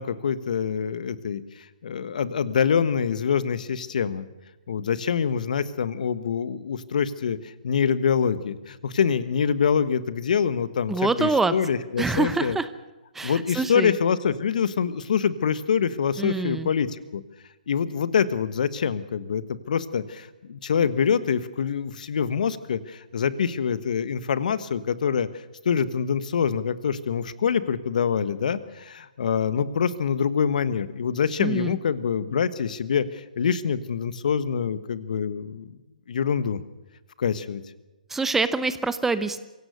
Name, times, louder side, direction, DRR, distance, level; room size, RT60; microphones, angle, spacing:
voice 1, 0.0-4.3 4.7-12.6 13.2-17.2 17.7-25.3 25.6-35.8 36.1-36.6 37.2-37.6, left 7 dB, 65° left, 14 dB, 1.4 m, -25 dB
voice 2, 10.9-11.5 12.0-12.7 13.1-13.9 16.2-16.7 31.4-31.8 38.1-39.4, right 3 dB, 5° right, 13 dB, 0.8 m, -25 dB
24.0 x 16.5 x 6.6 m, 1.1 s
hypercardioid pair, 140°, 5 cm